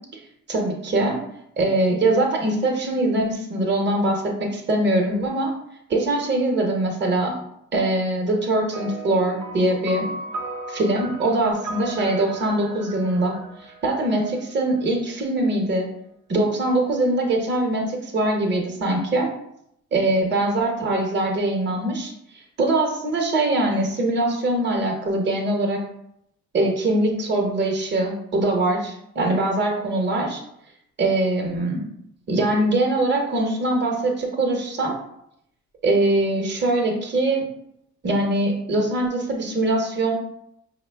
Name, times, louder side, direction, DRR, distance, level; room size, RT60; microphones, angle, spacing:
voice 1, 0.5-1.2 1.6-5.5 5.9-7.3 7.7-10.1 10.7-13.3 13.6-15.9 16.3-19.3 19.9-25.8 26.5-30.4 31.0-31.8 32.3-34.9 35.8-37.4 38.0-40.1, right 2 dB, 35° right, 0 dB, 0.9 m, -22 dB
sound 1, 8.7-14.5, right 2 dB, 90° right, 0.7 m, -36 dB
4.8 x 2.2 x 3.4 m, 0.75 s
cardioid pair, 90°, 30 cm